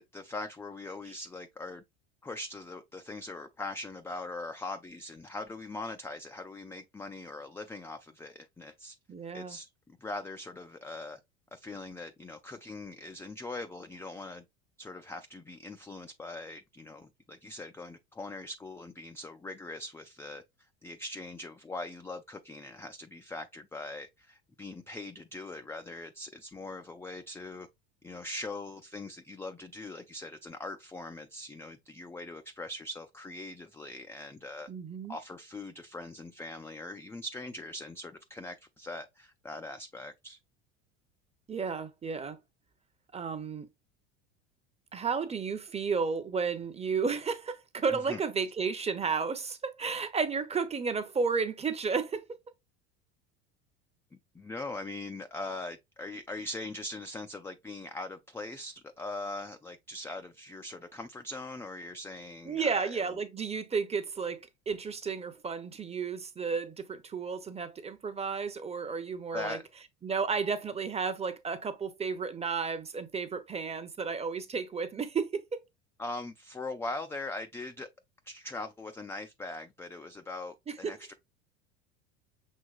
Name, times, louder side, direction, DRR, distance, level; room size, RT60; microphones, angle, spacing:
voice 1, 0.0-1.8 2.2-9.0 9.3-11.2 11.5-14.4 14.8-20.4 20.8-27.7 28.0-34.7 35.1-40.4 47.9-48.2 54.1-63.0 69.3-69.7 76.0-77.9 78.3-81.1, left 2 dB, 10° left, 0.4 m, -41 dB
voice 2, 9.1-9.6 34.7-35.2 41.5-42.4 43.1-43.7 44.9-52.2 62.5-69.6 70.0-75.6 80.7-81.0, right 5 dB, 20° right, 0.8 m, -32 dB
6.4 x 2.9 x 2.4 m
hypercardioid pair, 85°, 34 cm